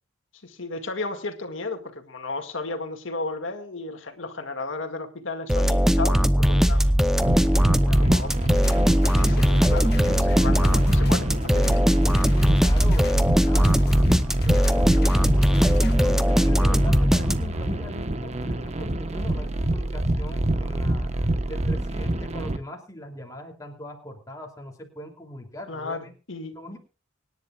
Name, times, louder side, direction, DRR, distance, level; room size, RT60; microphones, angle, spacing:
voice 1, 0.4-6.8 7.8-8.3 8.9-9.9 10.2-11.7 12.2-12.3 25.7-26.6, left 3 dB, 70° left, 5 dB, 2.1 m, -34 dB
sound 1, 5.5-17.7, equal, ahead, 0.7 m, -20 dB
sound 2, 7.2-22.6, right 1 dB, 35° right, 1.2 m, -27 dB
sound 3, 8.1-16.1, left 3 dB, 50° left, 1.4 m, -40 dB
voice 2, 12.4-13.8 14.4-21.1 21.5-26.1 26.5-26.8, equal, 15° left, 2 dB, 2.9 m, -40 dB
25.0 x 10.5 x 2.4 m, 0.34 s
head